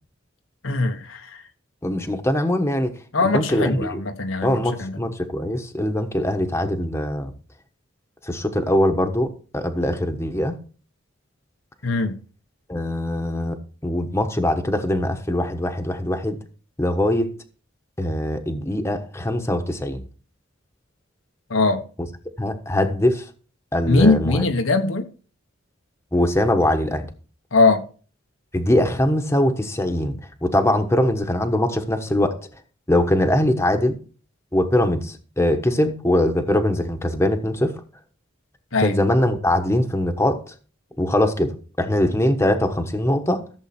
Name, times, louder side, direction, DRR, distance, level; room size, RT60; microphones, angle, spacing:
voice 1, 0.6-1.2 3.1-5.0 11.8-12.2 21.5-21.8 23.9-25.0 27.5-27.8 38.7-39.0, left 3 dB, 90° left, 1.5 m, -20 dB
voice 2, 1.8-2.9 3.2-4.0 4.4-7.3 8.2-10.6 12.7-16.4 16.8-17.3 18.0-20.0 22.4-23.2 23.7-24.4 26.1-27.1 28.5-32.4 32.9-34.0 34.5-37.8 38.8-40.4 41.0-43.4, left 1 dB, 15° left, 1.2 m, -22 dB
15.0 x 7.4 x 4.4 m
head